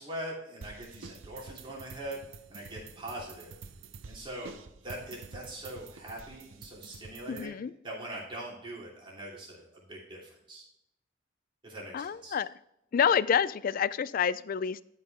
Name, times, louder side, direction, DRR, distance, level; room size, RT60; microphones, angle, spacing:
voice 1, 0.0-2.2 2.5-3.6 4.1-7.5 7.8-10.6 11.6-12.4, right 1 dB, 25° right, -4 dB, 3.1 m, -42 dB
sound 1, 0.6-7.5, right 4 dB, 75° right, 0.7 m, -48 dB
voice 2, 7.3-7.7 11.9-12.5 12.9-14.8, left 7 dB, 45° left, 18 dB, 0.3 m, -28 dB
12.0 x 5.5 x 3.5 m, 0.81 s
head